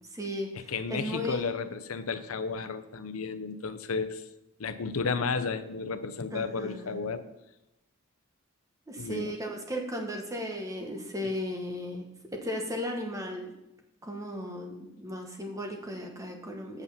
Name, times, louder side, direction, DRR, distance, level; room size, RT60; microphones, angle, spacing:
voice 1, 0.1-1.5 6.3-7.0 8.9-12.0 12.3-13.5 14.0-16.8, left 1 dB, 15° right, 2 dB, 1.1 m, -36 dB
voice 2, 0.7-4.2 4.6-7.2 9.0-9.3, left 4 dB, 85° left, 10 dB, 0.7 m, -33 dB
8.1 x 6.9 x 5.6 m, 0.90 s
head